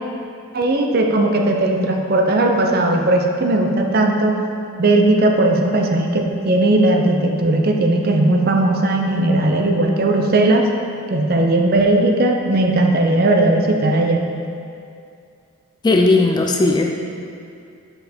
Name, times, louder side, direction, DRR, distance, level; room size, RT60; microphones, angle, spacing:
voice 1, 0.5-4.4 4.8-10.7 11.1-14.3, right 2 dB, 45° right, 2 dB, 0.6 m, -17 dB
voice 2, 15.8-16.9, left 2 dB, 20° left, 2 dB, 0.3 m, -16 dB
5.7 x 5.5 x 4.3 m, 2.5 s
head